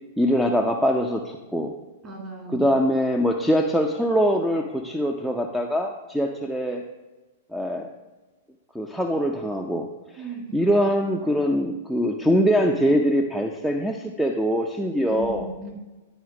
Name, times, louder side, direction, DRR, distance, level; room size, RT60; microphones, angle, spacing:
voice 1, 0.2-1.7 2.5-6.8 7.5-7.9 8.7-9.9 10.5-15.5, equal, ahead, 3 dB, 0.6 m, -23 dB
voice 2, 2.0-2.7 10.2-10.6 15.0-15.7, right 3 dB, 30° right, 0 dB, 2.8 m, -36 dB
11.0 x 4.3 x 4.9 m, 1.2 s
hypercardioid pair, 115°, 0 cm